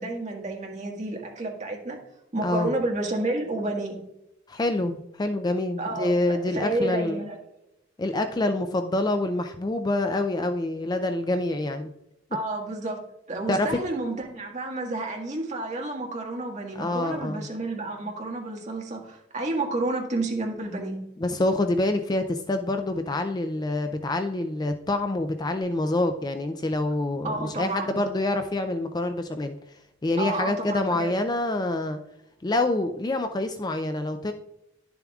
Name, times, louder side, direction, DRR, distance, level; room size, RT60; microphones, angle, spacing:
voice 1, 0.0-2.0 2.3-4.0 5.8-7.4 12.3-21.0 27.2-28.0 30.2-31.1, right 2 dB, 35° right, 0 dB, 1.6 m, -30 dB
voice 2, 4.5-7.2 8.0-11.9 13.5-13.8 16.8-17.5 21.2-29.6 30.0-32.0 32.4-34.3, left 2 dB, 20° left, 7 dB, 0.4 m, -26 dB
11.0 x 7.0 x 2.3 m, 0.85 s
head